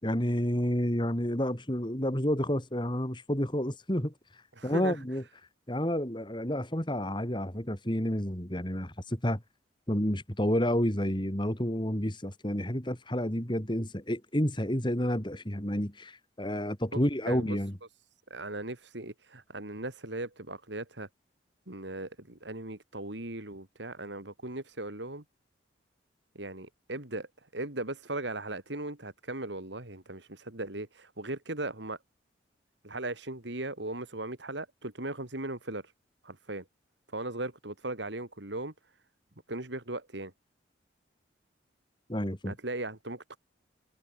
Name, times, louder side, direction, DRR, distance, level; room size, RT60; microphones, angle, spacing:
voice 1, 0.0-4.1 4.6-5.2 5.7-9.4 9.9-17.7 42.1-42.5, equal, 25° left, 3.3 m, -30 dB
voice 2, 4.6-5.0 16.9-17.0 17.3-17.6 18.3-21.1 21.7-25.2 26.3-27.3 27.5-32.0 32.8-35.9 36.2-36.6 37.1-38.7 39.5-40.3 42.5-43.4, right 2 dB, 70° right, 3.2 m, -38 dB
head